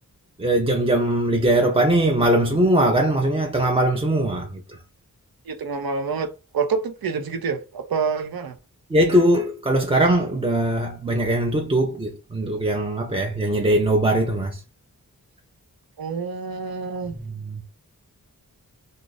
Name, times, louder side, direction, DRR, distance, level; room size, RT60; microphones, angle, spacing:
voice 1, 0.4-4.8 8.9-14.6 17.3-17.6, right 1 dB, 15° right, 0.4 m, -21 dB
voice 2, 5.5-8.6 16.0-17.1, right 5 dB, 90° right, 0.7 m, -27 dB
2.5 x 2.4 x 3.8 m
wide cardioid pair, 65°, 35 cm